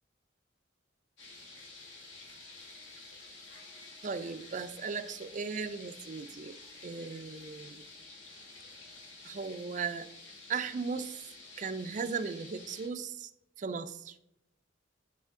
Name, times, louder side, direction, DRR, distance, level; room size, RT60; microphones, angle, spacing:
sound 1, 1.2-12.9, left 3 dB, 85° left, 2.0 m, -51 dB
voice 1, 4.0-6.6 6.8-7.8 9.2-10.1 10.5-11.2 11.6-13.3 13.6-14.2, right 5 dB, 45° right, 11 dB, 0.4 m, -37 dB
9.7 x 4.3 x 3.7 m, 0.83 s
head